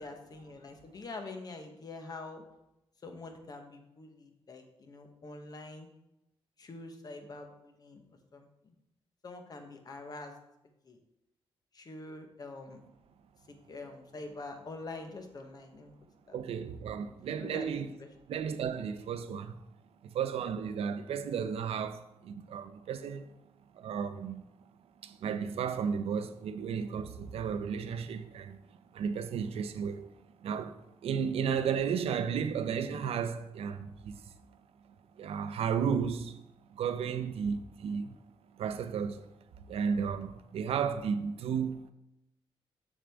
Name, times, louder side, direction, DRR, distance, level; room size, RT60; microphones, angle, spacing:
voice 1, 0.0-2.4 3.0-5.9 6.6-8.0 8.3-8.7 9.2-10.3 10.8-11.0 11.7-12.8 13.7-15.9 16.3-16.4 17.4-17.7 18.0-18.1, left 3 dB, 40° left, 1.0 m, -45 dB
voice 2, 16.3-17.9 18.3-19.6 20.0-23.3 23.7-24.4 25.0-28.6 28.9-30.1 30.4-34.2 35.2-36.4 36.7-38.1 38.6-39.3 39.7-41.9, right 7 dB, 80° right, 0.6 m, -33 dB
7.3 x 6.4 x 3.5 m
wide cardioid pair, 140°, 10 cm